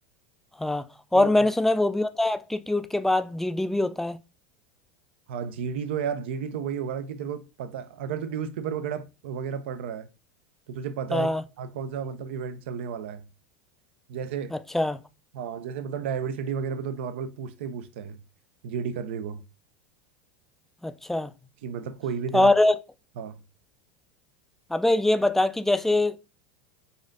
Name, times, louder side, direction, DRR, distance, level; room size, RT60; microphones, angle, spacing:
voice 1, 1.1-4.2 11.1-11.4 14.5-15.0 20.8-21.3 22.3-22.7 24.7-26.2, left 2 dB, 5° left, 0.3 m, -23 dB
voice 2, 5.3-10.1 10.7-11.3 11.6-13.2 14.1-14.5 15.3-18.2 18.6-19.4 21.6-22.5 23.2-23.4, right 7 dB, 70° right, 0.5 m, -32 dB
4.1 x 2.5 x 2.5 m
hypercardioid pair, 95°, 6 cm